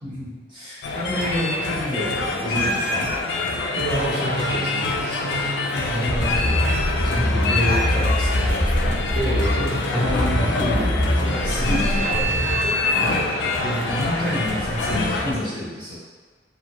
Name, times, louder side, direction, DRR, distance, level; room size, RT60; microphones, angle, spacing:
voice 1, 0.0-3.1 5.3-6.5 6.9-9.1 9.7-12.3 13.6-15.9, equal, 30° right, -11 dB, 1.0 m, -28 dB
sound 1, 0.8-15.3, left 2 dB, 90° left, 0.3 m, -25 dB
sound 2, 3.5-15.3, equal, 20° left, 0.6 m, -26 dB
voice 2, 3.7-5.4 9.2-9.8 12.9-13.3, right 1 dB, 90° right, -7 dB, 0.6 m, -28 dB
2.8 x 2.0 x 2.9 m, 1.3 s
head